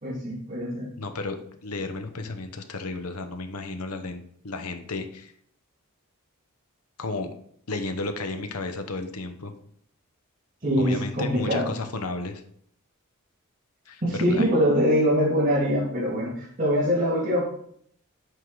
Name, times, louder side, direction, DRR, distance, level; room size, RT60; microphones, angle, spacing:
voice 1, 0.0-0.9 10.6-11.7 14.0-17.4, equal, 35° right, -8 dB, 2.3 m, -23 dB
voice 2, 1.0-1.4 1.6-5.3 7.0-7.3 7.7-9.5 10.8-12.4 13.9-14.0 14.3-14.4, left 3 dB, 90° left, 8 dB, 0.9 m, -33 dB
7.9 x 4.7 x 3.9 m, 0.65 s
head